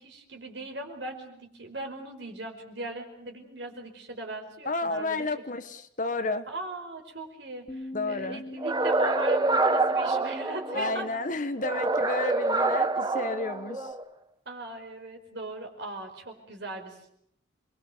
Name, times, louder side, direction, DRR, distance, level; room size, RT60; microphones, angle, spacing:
voice 1, 0.0-5.3 6.5-11.1 11.5-11.6 14.4-17.1, right 2 dB, 70° right, 4 dB, 5.0 m, -39 dB
voice 2, 4.6-6.5 7.9-8.4 10.7-13.9, left 3 dB, 45° left, 10 dB, 1.4 m, -31 dB
Bass guitar, 7.7-13.9, left 1 dB, 15° left, 1.3 m, -45 dB
sound 1, 8.6-11.0 11.6-14.0, right 2 dB, 20° right, 0.9 m, -26 dB
28.0 x 22.5 x 6.9 m, 0.71 s
head